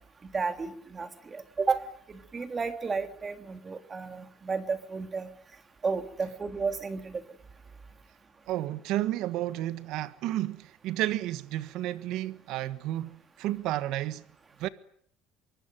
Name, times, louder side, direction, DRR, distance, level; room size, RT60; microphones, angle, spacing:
voice 1, 0.3-5.3 5.8-7.2, right 4 dB, 25° right, 3.1 m, -32 dB
voice 2, 8.5-14.2 14.6-14.7, right 14 dB, 75° right, 1.5 m, -32 dB
24.5 x 24.0 x 9.2 m
cardioid pair, 120°, 0 cm